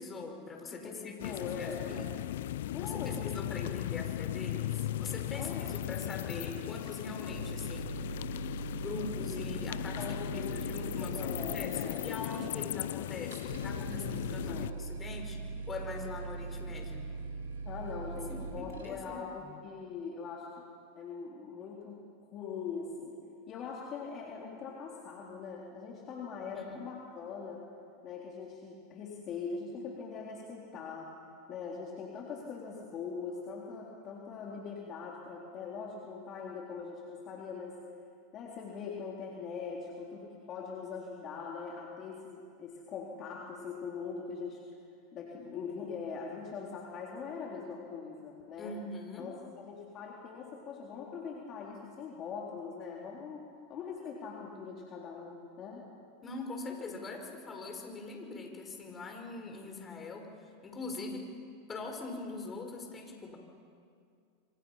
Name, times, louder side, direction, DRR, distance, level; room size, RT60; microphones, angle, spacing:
voice 1, 0.0-2.1 2.8-8.1 8.7-14.0 14.3-15.4 15.7-17.1 18.3-19.6 26.5-26.8 48.6-49.3 56.2-61.3 61.7-63.4, left 3 dB, 25° left, 3 dB, 5.2 m, -43 dB
voice 2, 0.7-2.1 2.7-3.7 5.3-5.6 10.0-12.0 12.4-12.6 13.9-14.7 17.6-20.6 21.0-23.1 23.5-27.6 28.0-31.1 31.5-37.8 38.3-44.6 45.1-48.7 49.2-53.4 53.7-55.8, left 5 dB, 40° left, -2 dB, 3.8 m, -42 dB
sound 1, 1.2-14.7, left 13 dB, 75° left, 0.5 m, -37 dB
sound 2, 7.3-18.9, right 3 dB, 90° right, 3.6 m, -41 dB
27.0 x 25.5 x 5.8 m, 2.3 s
hypercardioid pair, 105°, 0 cm